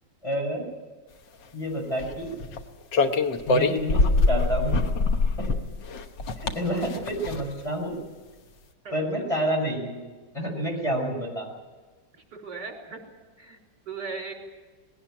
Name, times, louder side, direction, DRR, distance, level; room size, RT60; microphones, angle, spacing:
voice 1, 0.2-0.7 1.5-2.3 3.5-4.8 5.4-5.5 6.5-8.0 8.9-10.0 10.3-11.5, right 1 dB, 15° left, -1 dB, 6.1 m, -28 dB
sound 1, 2.0-2.6 2.9-7.6, left 3 dB, 85° left, 1.9 m, -24 dB
voice 2, 8.8-9.3 10.7-10.8 12.3-13.0 13.4-13.6 13.9-14.3, right 4 dB, 70° right, 0 dB, 4.6 m, -38 dB
20.0 x 17.5 x 8.8 m, 1.3 s
omnidirectional pair, 1.9 m